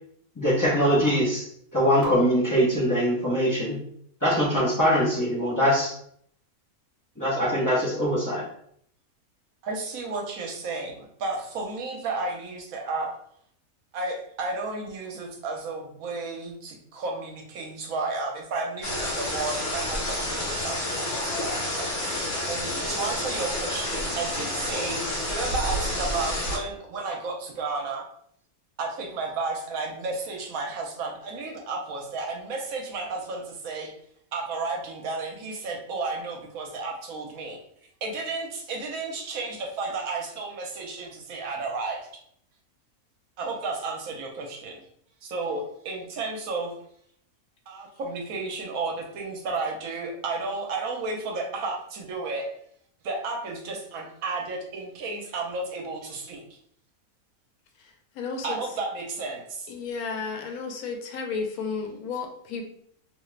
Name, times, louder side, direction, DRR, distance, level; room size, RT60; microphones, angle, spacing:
voice 1, 0.4-1.5 1.7-3.8 4.2-5.9 7.2-8.4, equal, 20° left, -6 dB, 0.5 m, -22 dB
voice 2, 9.6-13.1 13.9-22.1 22.4-28.1 28.8-33.9 34.3-37.6 38.0-42.1 43.4-44.8 45.2-46.7 47.7-52.5 53.0-56.4 58.4-59.4, right 3 dB, 75° right, 2 dB, 1.1 m, -32 dB
sound 1, 18.8-26.6, left 1 dB, 60° left, 1.0 m, -29 dB
voice 3, 58.2-58.6 59.7-62.6, left 5 dB, 80° left, 3 dB, 1.1 m, -32 dB
2.8 x 2.3 x 3.1 m, 0.66 s
omnidirectional pair, 1.5 m